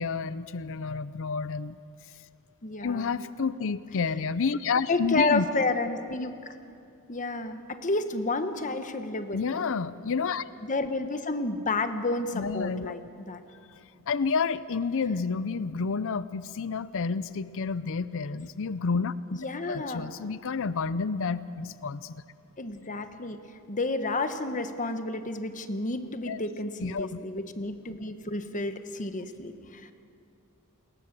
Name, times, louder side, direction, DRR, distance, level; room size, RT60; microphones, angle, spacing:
voice 1, 0.0-1.8 2.8-5.5 9.3-10.4 12.3-13.0 14.1-19.4 19.7-22.1 26.3-26.4 26.8-27.2, left 5 dB, 60° left, 15 dB, 0.6 m, -30 dB
voice 2, 2.6-3.2 4.9-6.6 7.1-9.7 10.6-13.0 13.3-13.4 19.3-20.1 22.6-29.9, left 2 dB, 35° left, 9 dB, 1.3 m, -31 dB
28.5 x 20.5 x 7.5 m, 2.5 s
head